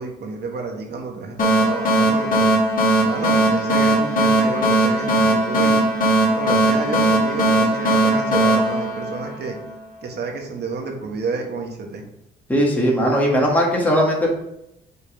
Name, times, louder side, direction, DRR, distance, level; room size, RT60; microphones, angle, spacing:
voice 1, 0.0-2.5 3.0-5.8 6.3-9.6 10.0-12.0, right 4 dB, 55° right, 2 dB, 1.5 m, -30 dB
sound 1, 1.4-9.7, right 1 dB, 45° left, 2.5 m, -19 dB
voice 2, 12.5-14.3, equal, 10° left, -3 dB, 1.9 m, -18 dB
5.6 x 4.0 x 5.1 m, 0.82 s
cardioid pair, 90°, 20 cm